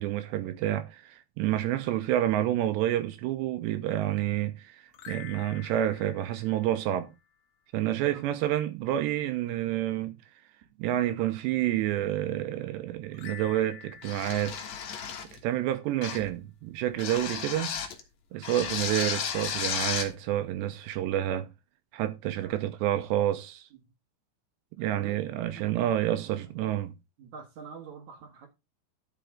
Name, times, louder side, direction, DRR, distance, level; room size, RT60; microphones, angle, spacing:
voice 1, 0.0-7.1 7.7-10.1 10.8-14.6 15.3-17.8 18.3-21.5 21.9-23.7 24.8-26.9, right 12 dB, 80° right, 2.8 m, -29 dB
sound 1, 4.9-7.4 13.1-15.7, left 8 dB, 80° left, 1.8 m, -48 dB
voice 2, 7.8-8.2 22.4-22.5 23.7-23.8 24.9-25.8 26.1-26.4 27.2-28.5, right 6 dB, 60° right, 2.0 m, -46 dB
sound 2, 14.0-15.4 16.0-16.3 17.0-18.0 18.4-20.1, left 7 dB, 60° left, 1.8 m, -33 dB
11.5 x 5.9 x 3.7 m
omnidirectional pair, 5.3 m